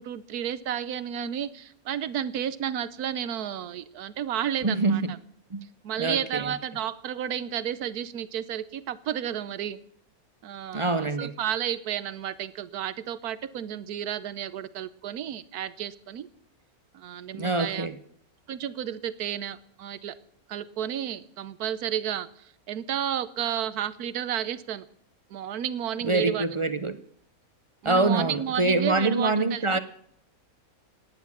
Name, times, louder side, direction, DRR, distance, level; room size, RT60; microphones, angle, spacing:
voice 1, 0.0-5.2 5.8-9.8 10.4-16.3 16.9-17.9 18.5-20.1 20.5-24.8 25.3-26.5 27.8-29.8, right 10 dB, 85° right, 1.3 m, -32 dB
voice 2, 4.6-5.1 5.5-5.6 6.0-6.5 10.7-11.3 17.3-18.0 26.0-27.0 27.8-29.8, right 2 dB, 35° right, 0.4 m, -25 dB
17.5 x 10.0 x 7.3 m
omnidirectional pair, 1.6 m